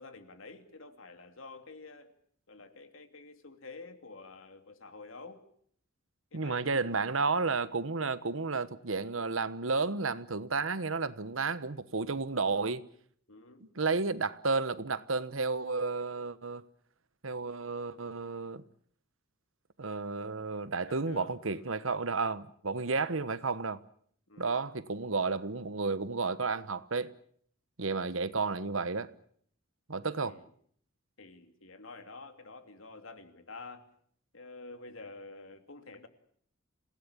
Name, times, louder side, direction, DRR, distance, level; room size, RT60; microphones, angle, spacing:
voice 1, 0.0-2.1 2.5-5.4 6.3-6.9 13.3-13.6 20.9-21.7 24.3-24.6 30.3-30.4 31.2-33.9 34.3-36.1, left 3 dB, 80° left, 2.8 m, -49 dB
voice 2, 6.3-12.9 13.6-16.7 17.2-18.6 19.8-23.8 24.4-27.1 27.8-29.1 29.9-30.4, right 4 dB, 80° right, 1.2 m, -32 dB
27.5 x 18.0 x 8.7 m
head